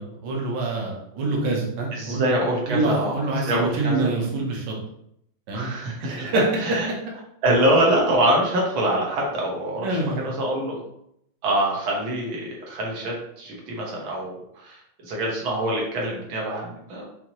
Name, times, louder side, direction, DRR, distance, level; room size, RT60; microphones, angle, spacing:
voice 1, 0.0-2.3 2.7-4.7 5.5-5.7 6.0-6.5 9.8-10.3, right 2 dB, 65° right, -1 dB, 1.4 m, -26 dB
voice 2, 1.9-3.2 3.5-4.1 5.5-6.9 7.4-10.8 11.4-17.0, right 1 dB, 80° right, -2 dB, 1.8 m, -25 dB
5.8 x 2.8 x 2.9 m, 0.73 s
omnidirectional pair, 2.2 m